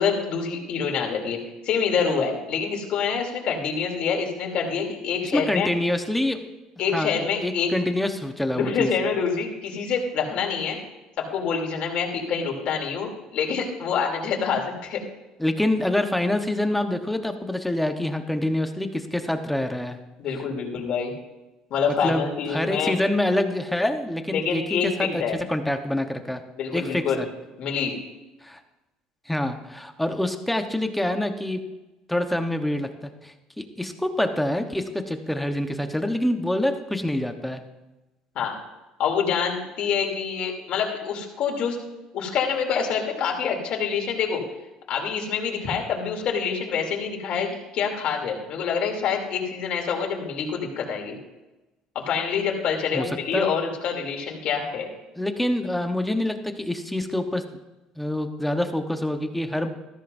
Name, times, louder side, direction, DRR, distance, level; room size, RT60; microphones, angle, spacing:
voice 1, 0.0-5.7 6.8-7.7 8.5-10.8 11.2-15.0 20.2-21.1 21.7-23.0 24.3-25.4 26.6-27.2 27.6-27.9 38.3-38.5 39.0-41.8 42.1-44.4 44.9-51.2 51.9-54.9, left 6 dB, 60° left, 1 dB, 3.0 m, -26 dB
voice 2, 5.3-6.4 6.9-8.9 15.4-20.0 22.0-26.4 26.7-27.3 28.4-28.6 29.3-31.6 32.1-37.6 52.9-53.5 55.2-57.4 58.0-59.7, left 1 dB, 5° left, 6 dB, 1.1 m, -26 dB
14.5 x 13.5 x 2.7 m, 1.0 s
cardioid pair, 105°, 2 cm